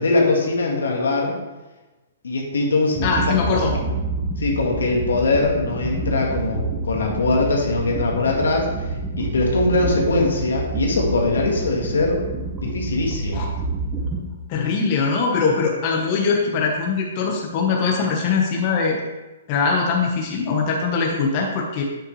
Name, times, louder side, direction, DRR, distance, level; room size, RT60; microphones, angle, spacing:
voice 1, 0.0-1.4 2.2-3.1 3.5-3.6 4.4-8.7 9.2-12.2 12.6-13.4, left 3 dB, 85° left, -1 dB, 1.8 m, -21 dB
sound 1, 2.9-14.2, right 3 dB, 15° right, 1.5 m, -28 dB
voice 2, 3.0-3.7 13.3-13.5 14.5-19.0 19.5-21.8, left 5 dB, 40° left, 0 dB, 1.4 m, -21 dB
8.0 x 7.2 x 3.3 m, 1.1 s
hypercardioid pair, 135°, 0 cm